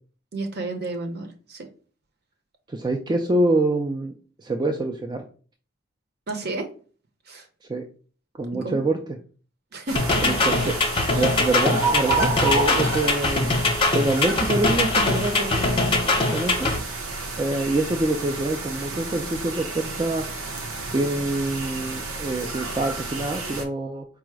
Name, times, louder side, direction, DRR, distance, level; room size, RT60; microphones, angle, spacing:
voice 1, 0.3-1.7 6.3-6.7 7.3-7.5 8.5-8.9 9.7-10.7 11.1-11.3, right 2 dB, 50° right, 5 dB, 0.7 m, -32 dB
voice 2, 2.7-4.1 4.4-5.2 7.7-7.8 8.4-9.0 10.2-10.6 11.1-13.5 13.9-16.7 17.4-20.2 20.9-24.0, right 2 dB, 20° right, 3 dB, 0.3 m, -25 dB
sound 1, 9.9-16.8, left 2 dB, 25° left, 0.7 m, -22 dB
sound 2, 9.9-23.6, right 3 dB, 80° right, 0.8 m, -31 dB
4.5 x 2.0 x 4.6 m, 0.40 s
head